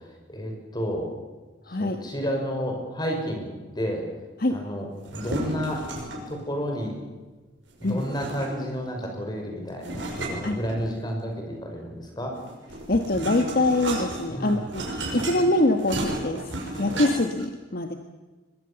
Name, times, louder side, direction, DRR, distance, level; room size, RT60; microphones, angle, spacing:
voice 1, 0.3-1.1 1.7-4.0 4.5-5.9 6.3-7.0 7.8-12.4 14.3-14.7, equal, 20° left, 2 dB, 5.9 m, -31 dB
voice 2, 1.7-2.0 4.4-4.6 7.8-8.0 10.4-10.6 12.9-16.4 16.8-17.9, left 2 dB, 50° left, 5 dB, 1.6 m, -24 dB
sound 1, 5.0-6.4 7.8-8.8 9.8-11.2 12.4-17.4, right 2 dB, 80° right, 6.1 m, -33 dB
22.5 x 22.0 x 7.1 m, 1.3 s
head